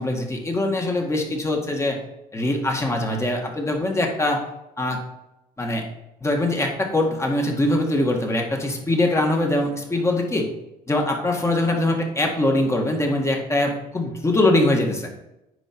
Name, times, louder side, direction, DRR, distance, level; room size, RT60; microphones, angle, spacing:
voice 1, 0.0-2.0 2.3-4.4 4.8-5.0 5.6-5.8 6.2-10.5 10.9-15.1, left 1 dB, 15° left, 1 dB, 1.8 m, -22 dB
9.9 x 4.6 x 4.5 m, 0.91 s
cardioid pair, 110°, 17 cm